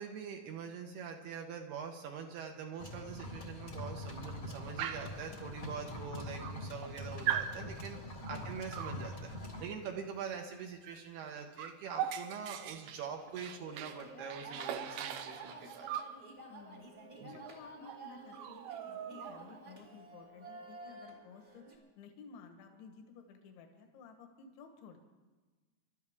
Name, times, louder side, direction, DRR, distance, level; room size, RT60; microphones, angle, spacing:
voice 1, 0.0-9.3 9.6-15.9 17.2-17.4, right 6 dB, 70° right, 2 dB, 2.7 m, -44 dB
sound 1, 2.8-9.6, left 1 dB, 45° left, 1.1 m, -44 dB
Dog, 4.8-5.2 6.0-6.1 6.4-6.9 7.3-7.6 8.7-9.0 10.8-11.0 11.3-14.0 14.3-16.2 17.4-17.6 17.9-18.0 18.3-19.6, right 10 dB, 90° right, 2.0 m, -39 dB
sound 2, 13.2-21.8, right 3 dB, 40° right, 0.6 m, -50 dB
voice 2, 16.5-25.0, left 5 dB, 80° left, 5 dB, 3.7 m, -55 dB
27.5 x 12.5 x 3.6 m, 1.3 s
omnidirectional pair, 5.3 m